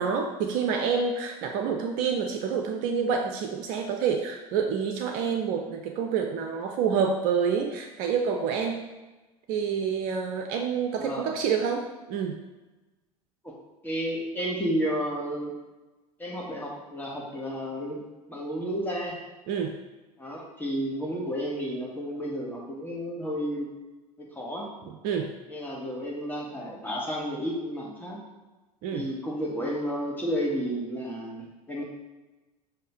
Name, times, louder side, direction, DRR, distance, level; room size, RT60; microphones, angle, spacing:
voice 1, 0.0-8.8 9.5-12.4 19.5-19.8 24.9-25.3 28.8-29.1, right 6 dB, 50° right, 4 dB, 0.6 m, -28 dB
voice 2, 11.0-11.3 13.4-13.5 13.8-15.5 16.2-18.0 18.3-19.2 20.2-23.7 24.2-24.7 25.5-28.2 28.9-31.8, equal, 10° left, -3 dB, 1.8 m, -32 dB
6.6 x 2.8 x 5.2 m, 1.2 s
figure-of-eight pair, 80°, 19 cm